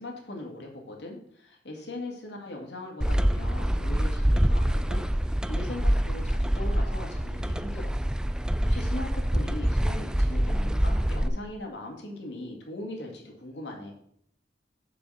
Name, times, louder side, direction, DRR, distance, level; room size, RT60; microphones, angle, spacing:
voice 1, 0.0-8.0 8.3-13.9, left 2 dB, 85° left, 1 dB, 2.1 m, -40 dB
sound 1, 3.0-11.3, equal, 5° right, 0.3 m, -25 dB
6.9 x 4.9 x 6.3 m, 0.66 s
head